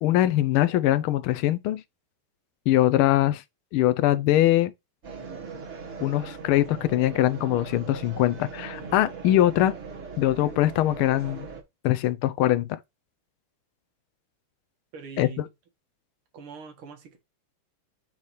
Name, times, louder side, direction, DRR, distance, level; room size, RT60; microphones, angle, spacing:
voice 1, 0.0-1.8 2.7-3.4 3.7-4.7 6.0-9.7 10.2-11.5 11.8-12.8 15.2-15.4, left 14 dB, 85° left, 1.5 m, -22 dB
sound 1, 5.0-11.6, right 5 dB, 35° right, 1.6 m, -40 dB
voice 2, 14.9-15.5 16.3-17.2, right 6 dB, 90° right, 2.2 m, -42 dB
5.6 x 5.5 x 3.1 m
omnidirectional pair, 2.3 m